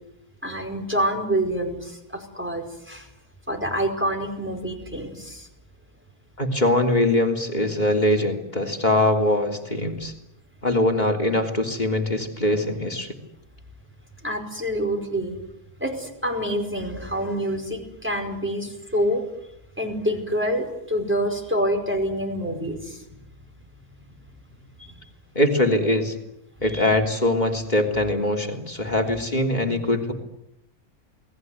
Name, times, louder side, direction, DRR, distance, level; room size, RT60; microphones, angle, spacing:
voice 1, 0.4-3.1 3.5-5.5 14.2-15.4 15.8-19.2 19.8-23.0 24.8-25.0 26.7-27.0, equal, 5° right, 3 dB, 5.2 m, -27 dB
voice 2, 6.4-10.1 10.6-13.1 25.4-26.1 26.6-30.1, left 1 dB, 30° left, 3 dB, 3.6 m, -22 dB
29.0 x 20.5 x 9.6 m, 0.83 s
omnidirectional pair, 1.6 m